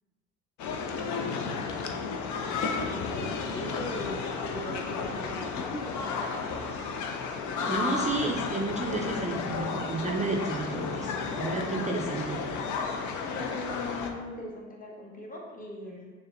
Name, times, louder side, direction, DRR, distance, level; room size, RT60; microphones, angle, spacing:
sound 1, 0.6-14.1, left 5 dB, 55° left, 0.5 m, -33 dB
voice 1, 0.7-1.5 2.8-6.6 11.6-11.8 13.2-16.1, left 1 dB, 25° left, -2 dB, 1.1 m, -40 dB
voice 2, 7.7-12.4, right 3 dB, 20° right, -1 dB, 0.4 m, -31 dB
6.3 x 2.1 x 2.5 m, 1.4 s
hypercardioid pair, 55°, 36 cm